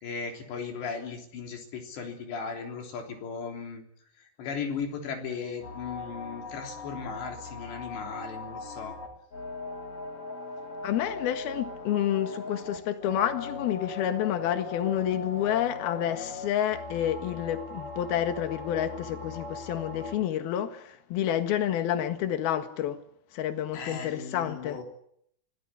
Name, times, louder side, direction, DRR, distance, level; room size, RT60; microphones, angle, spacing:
voice 1, 0.0-3.8 4.4-8.9 23.7-24.8, left 5 dB, 85° left, 5.7 m, -37 dB
sound 1, 5.6-20.2, left 3 dB, 35° left, 4.5 m, -39 dB
voice 2, 10.8-23.0 23.3-24.8, left 10 dB, 65° left, 3.4 m, -29 dB
24.5 x 17.5 x 9.9 m
omnidirectional pair, 4.9 m